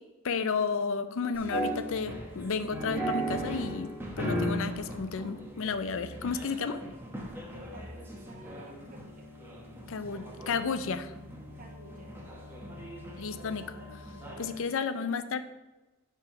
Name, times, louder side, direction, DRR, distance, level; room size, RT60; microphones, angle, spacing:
voice 1, 0.2-3.9 4.2-6.8 9.9-11.1 13.2-14.0 14.4-15.4, left 5 dB, 65° left, 11 dB, 0.5 m, -32 dB
sound 1, 1.3-14.6, right 1 dB, 10° right, 1.2 m, -38 dB
voice 2, 7.4-9.3 11.6-12.2 12.7-13.3 14.8-15.1, right 1 dB, 40° right, -1 dB, 1.1 m, -53 dB
9.9 x 3.5 x 5.8 m, 1.1 s
head